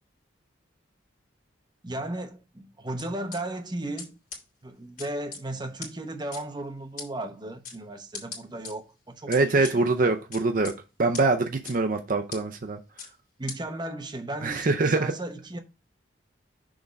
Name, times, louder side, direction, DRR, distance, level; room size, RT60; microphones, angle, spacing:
voice 1, 1.8-4.2 4.6-9.8 13.4-15.6, right 1 dB, 25° right, 0.8 m, -35 dB
sound 1, 3.0-3.4 4.0-4.1 4.3-4.4 5.0-5.4 5.8-5.9 6.3-6.4 7.0-7.1 7.6-7.8 8.1-8.7 9.3-9.7 10.3-10.7 11.1-11.2 11.6-11.8 12.3-12.4 13.0-13.1 13.5-13.6, left 5 dB, 45° left, 2.4 m, -38 dB
voice 2, 9.3-10.7 11.0-12.8 14.4-15.1, right 3 dB, 45° right, 0.5 m, -24 dB
6.3 x 3.5 x 5.1 m
head